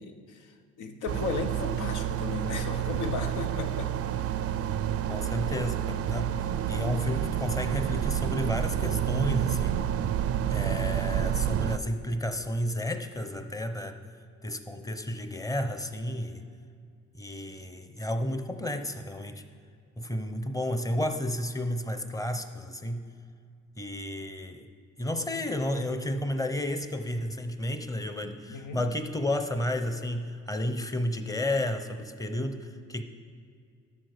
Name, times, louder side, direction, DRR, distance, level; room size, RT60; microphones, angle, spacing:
voice 1, 0.0-3.9 28.5-28.8, left 4 dB, 85° left, 6 dB, 0.9 m, -35 dB
sound 1, 1.1-11.8, right 10 dB, 50° right, 0.4 m, -29 dB
voice 2, 5.1-9.8 10.5-14.0 14.4-16.4 17.1-19.4 20.0-23.1 23.8-24.7 25.0-33.0, left 1 dB, 10° left, 8 dB, 0.7 m, -32 dB
12.5 x 6.1 x 5.0 m, 2.3 s
cardioid pair, 90°, 30 cm